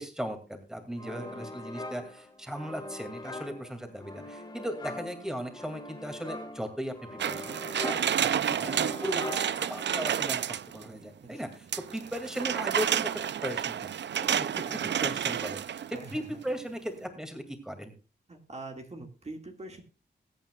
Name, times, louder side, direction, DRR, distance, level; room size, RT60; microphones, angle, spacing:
voice 1, 0.0-11.7 11.9-13.1 13.4-13.8 14.2-17.9, equal, 5° right, 6 dB, 2.3 m, -37 dB
sound 1, 1.0-10.5, left 2 dB, 25° left, 1.9 m, -42 dB
voice 2, 1.0-1.5 8.5-8.8 11.2-11.4 14.5-14.9 15.9-16.1 18.3-19.8, right 2 dB, 35° right, 3 dB, 1.9 m, -44 dB
sound 2, 7.2-10.9 11.7-16.1 16.5-16.6, right 9 dB, 80° right, 0.5 m, -30 dB
21.5 x 9.0 x 2.3 m, 0.33 s
wide cardioid pair, 100°, 18 cm